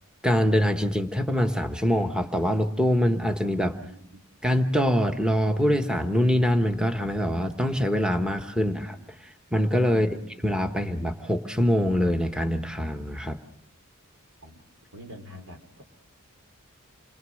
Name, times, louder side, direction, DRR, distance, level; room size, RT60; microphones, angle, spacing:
voice 1, 0.2-3.8 4.4-8.9 9.2-10.1 10.4-13.4, equal, 5° right, 5 dB, 1.2 m, -24 dB
voice 2, 3.8-4.2 8.6-9.1 9.9-10.3 14.4-14.6 14.9-15.8, equal, 80° right, 5 dB, 3.9 m, -45 dB
28.5 x 22.5 x 6.4 m, 0.74 s
head